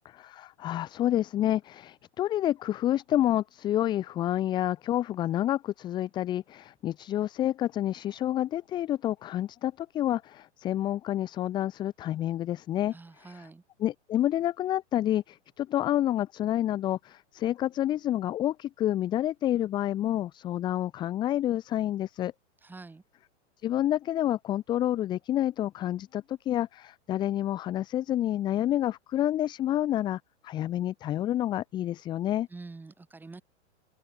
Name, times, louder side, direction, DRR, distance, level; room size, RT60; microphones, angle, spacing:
voice 1, 0.0-12.9 13.8-22.3 23.6-32.5, left 12 dB, 10° left, 0.8 m, -29 dB
voice 2, 12.9-13.6 22.6-23.0 32.5-33.4, right 3 dB, 5° right, 7.3 m, -46 dB
open air
hypercardioid pair, 165°, 35 cm